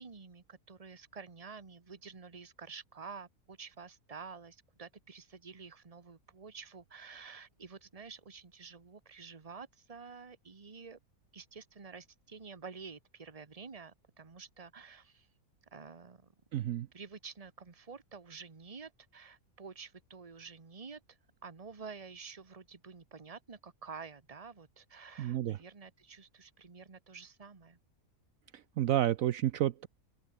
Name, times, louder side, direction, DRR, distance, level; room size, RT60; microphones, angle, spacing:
voice 1, 0.0-11.0 11.3-15.3 15.7-16.3 16.9-27.8, right 5 dB, 25° right, 1.3 m, -49 dB
voice 2, 16.5-16.9 25.2-25.6 28.8-29.9, right 12 dB, 70° right, 1.0 m, -30 dB
open air
omnidirectional pair, 1.6 m